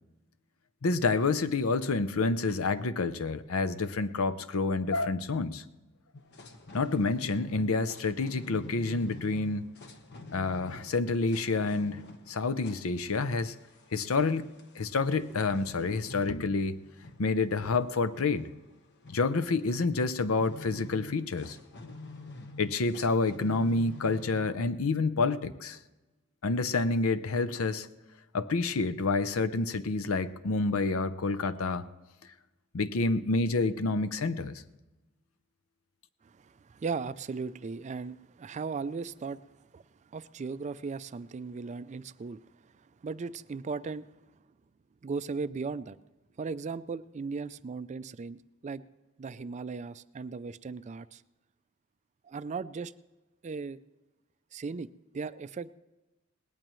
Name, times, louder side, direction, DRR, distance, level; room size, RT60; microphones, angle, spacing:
voice 1, 0.8-5.6 6.7-9.7 10.3-13.5 13.9-16.8 17.2-18.5 19.1-21.6 22.6-25.8 26.4-27.9 28.3-31.8 32.7-34.5, left 3 dB, 80° left, 0.6 m, -28 dB
sound 1, 6.1-24.5, left 2 dB, 55° left, 1.2 m, -48 dB
voice 2, 36.7-39.4 39.7-39.8 40.1-42.4 43.0-44.1 45.0-46.0 46.4-48.8 49.2-51.2 52.3-52.9 53.4-53.8 54.5-55.7, right 4 dB, 35° right, 0.4 m, -37 dB
19.5 x 18.0 x 3.1 m
head